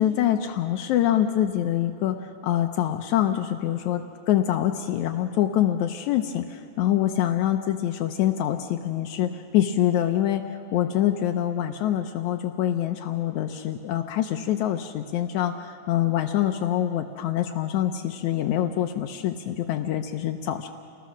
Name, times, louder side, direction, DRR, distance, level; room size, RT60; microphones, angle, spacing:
voice 1, 0.0-2.2 2.4-10.4 10.7-20.7, left 11 dB, 80° left, 5 dB, 2.1 m, -25 dB
28.0 x 20.0 x 6.2 m, 2.6 s
omnidirectional pair, 3.4 m